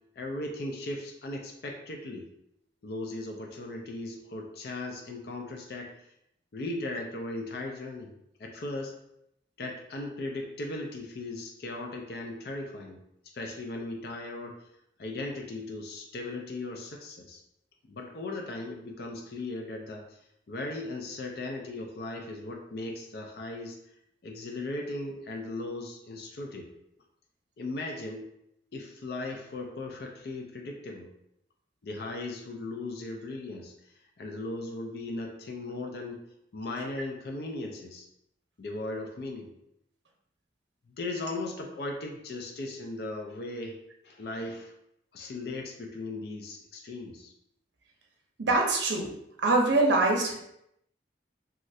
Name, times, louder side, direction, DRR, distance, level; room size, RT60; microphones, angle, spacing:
voice 1, 0.2-2.2 2.8-5.9 6.5-8.1 8.4-8.9 9.6-13.0 13.2-14.6 15.0-17.4 17.8-20.1 20.5-23.8 24.2-26.7 27.6-28.3 28.7-31.1 31.8-33.7 34.2-36.2 36.5-38.1 38.6-39.5 41.0-43.8 44.0-44.7 45.1-47.3, left 2 dB, 60° left, 2 dB, 0.4 m, -37 dB
voice 2, 48.4-49.1 49.4-50.4, right 2 dB, 80° right, 1 dB, 0.6 m, -23 dB
3.1 x 2.4 x 2.6 m, 0.78 s
head